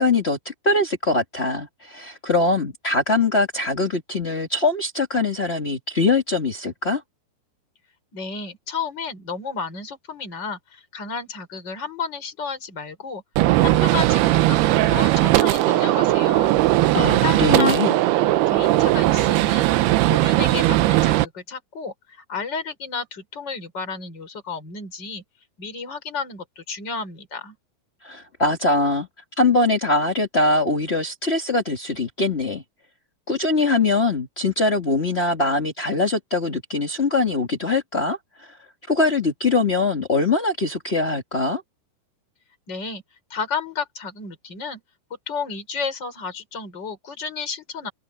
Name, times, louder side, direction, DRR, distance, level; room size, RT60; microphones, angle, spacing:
voice 1, 0.0-7.0 16.9-17.9 28.0-29.1 29.4-32.6 33.3-38.6 38.9-41.6, left 3 dB, 70° left, 0.6 m, -22 dB
voice 2, 8.1-13.2 13.6-14.6 14.8-16.6 16.9-17.8 18.0-19.7 20.1-25.2 25.6-27.6 42.7-43.0 43.3-44.8 45.3-47.9, left 5 dB, 25° left, 6.0 m, -32 dB
Gunshot gunfire, 13.4-21.2, right 16 dB, 75° right, 2.7 m, -18 dB
omnidirectional pair, 4.8 m